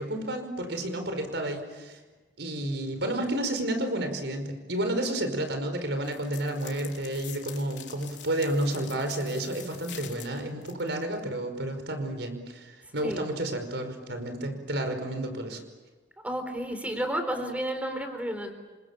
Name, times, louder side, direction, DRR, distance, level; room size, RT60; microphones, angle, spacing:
voice 1, 0.0-2.0 2.4-15.6, right 1 dB, 70° right, 7 dB, 5.2 m, -31 dB
sound 1, 6.0-11.1, left 11 dB, 75° left, 3.8 m, -46 dB
voice 2, 16.2-18.5, right 1 dB, 10° right, 7 dB, 4.2 m, -31 dB
29.0 x 26.0 x 7.3 m, 1.3 s
head